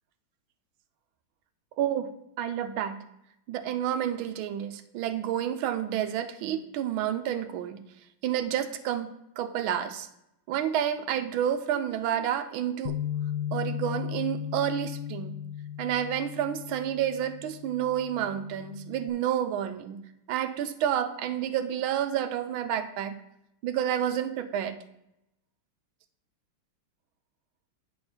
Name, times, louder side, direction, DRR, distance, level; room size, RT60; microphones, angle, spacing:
voice 1, 1.8-2.1 2.4-3.0 3.5-7.8 8.2-9.1 9.4-10.1 10.5-13.0 13.5-15.4 15.8-20.0 20.3-23.2 23.6-24.8, right 10 dB, 80° right, 10 dB, 1.4 m, -29 dB
Bass guitar, 12.9-19.1, left 10 dB, 70° left, 1.0 m, -36 dB
8.7 x 6.5 x 4.3 m, 0.83 s
omnidirectional pair, 2.3 m